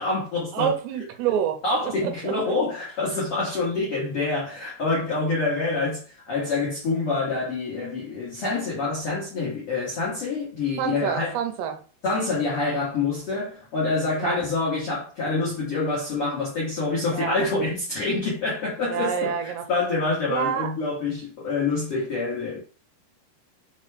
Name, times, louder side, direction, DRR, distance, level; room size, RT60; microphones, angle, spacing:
voice 1, 0.0-0.7 1.6-11.4 12.0-22.6, left 3 dB, 80° left, 1.3 m, -26 dB
voice 2, 0.5-2.6 10.8-11.8 14.2-14.4 17.1-17.5 18.8-19.6 20.3-20.7, right 8 dB, 80° right, 2.7 m, -27 dB
6.5 x 2.3 x 3.3 m
omnidirectional pair, 4.9 m